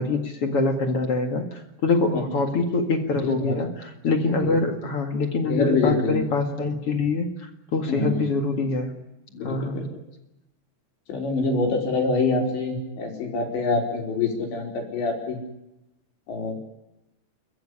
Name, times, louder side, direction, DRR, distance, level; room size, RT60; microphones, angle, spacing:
voice 1, 0.0-8.9 9.4-9.8, left 3 dB, 45° left, 5 dB, 2.2 m, -25 dB
voice 2, 3.2-3.6 4.4-4.6 5.5-6.2 7.9-8.3 9.3-9.9 11.1-15.4 16.3-16.6, left 3 dB, 90° left, 1 dB, 7.1 m, -25 dB
29.5 x 14.5 x 10.0 m, 0.92 s
omnidirectional pair, 4.9 m